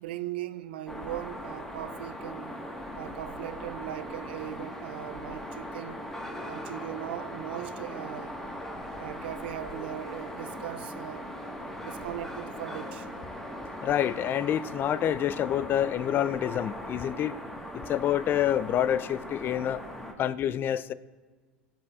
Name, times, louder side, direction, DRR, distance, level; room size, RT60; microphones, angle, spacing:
voice 1, 0.0-2.5 3.0-6.0 6.5-8.4 9.0-11.4 11.8-13.1, right 13 dB, 75° right, 0.5 m, -39 dB
sound 1, 0.9-20.1, equal, 5° left, 1.5 m, -39 dB
voice 2, 13.8-17.4 17.9-19.8 20.2-20.9, left 10 dB, 40° left, 0.4 m, -27 dB
20.0 x 7.5 x 2.4 m
hypercardioid pair, 80°, 6 cm